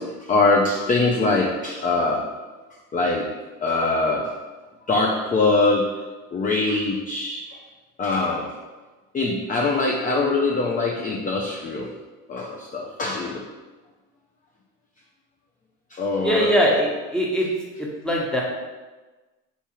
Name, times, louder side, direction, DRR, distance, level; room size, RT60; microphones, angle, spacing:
voice 1, 0.0-2.3 2.9-4.3 4.9-7.6 8.0-8.6 9.1-11.9 12.3-13.5 15.9-16.5, left 3 dB, 20° left, -1 dB, 0.5 m, -23 dB
voice 2, 16.2-17.5 17.8-18.4, equal, ahead, -4 dB, 1.1 m, -21 dB
3.4 x 2.8 x 4.3 m, 1.2 s
supercardioid pair, 85°, 37 cm